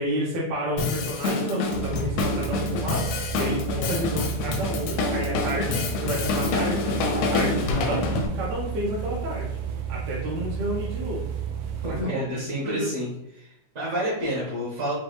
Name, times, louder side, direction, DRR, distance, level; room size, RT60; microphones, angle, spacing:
voice 1, 0.0-9.5 9.9-11.2 11.9-12.2 12.6-12.9, equal, 70° right, -6 dB, 2.1 m, -30 dB
Drum kit, 0.8-8.3, left 3 dB, 85° left, 2.0 m, -27 dB
sound 1, 1.7-12.0, right 8 dB, 90° right, 1.4 m, -32 dB
voice 2, 11.8-13.1 13.3-14.9, equal, 45° right, -6 dB, 0.9 m, -29 dB
6.1 x 2.4 x 3.2 m, 0.79 s
omnidirectional pair, 3.4 m